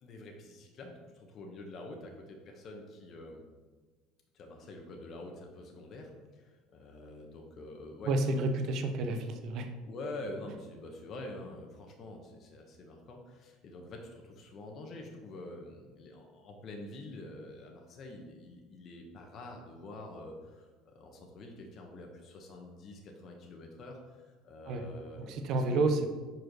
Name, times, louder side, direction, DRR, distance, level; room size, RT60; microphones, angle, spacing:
voice 1, 0.0-3.5 4.3-8.1 9.9-25.9, left 2 dB, 40° left, 1 dB, 1.0 m, -46 dB
voice 2, 8.1-9.7 24.7-24.8 25.3-26.1, right 2 dB, 55° right, 5 dB, 0.8 m, -30 dB
5.1 x 4.5 x 6.1 m, 1.3 s
cardioid pair, 135°, 0 cm